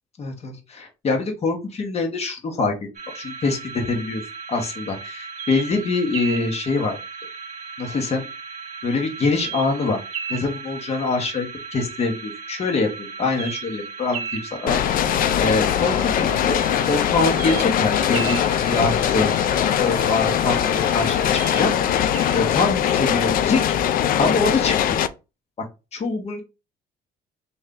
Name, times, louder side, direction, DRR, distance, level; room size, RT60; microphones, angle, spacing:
voice 1, 0.2-2.7 3.1-4.2 4.5-7.0 7.8-8.2 8.8-10.0 10.3-15.0 15.4-16.6 16.9-19.3 19.8-21.7 22.3-23.7 24.2-25.0 25.9-26.4, left 3 dB, 40° left, 3 dB, 1.2 m, -24 dB
sound 1, 2.9-22.8, right 6 dB, 45° right, 1.2 m, -35 dB
sound 2, 14.7-25.1, left 10 dB, 55° left, 0.4 m, -21 dB
3.2 x 2.7 x 3.7 m, 0.28 s
cardioid pair, 110°, 17 cm